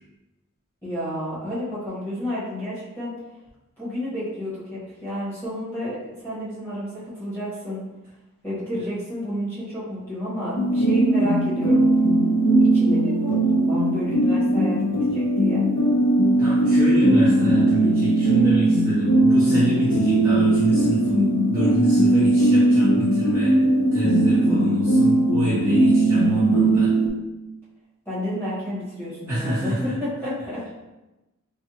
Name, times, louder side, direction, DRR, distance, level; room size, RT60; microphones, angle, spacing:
voice 1, 0.8-3.1 3.8-7.8 8.4-11.8 12.7-15.7 28.0-30.7, equal, 10° left, -10 dB, 1.2 m, -31 dB
sound 1, 10.6-27.1, right 1 dB, 65° left, 0.6 m, -19 dB
voice 2, 16.4-23.6 23.9-26.9 29.3-29.9, equal, 10° right, -10 dB, 0.5 m, -26 dB
3.4 x 2.1 x 2.8 m, 1.0 s
head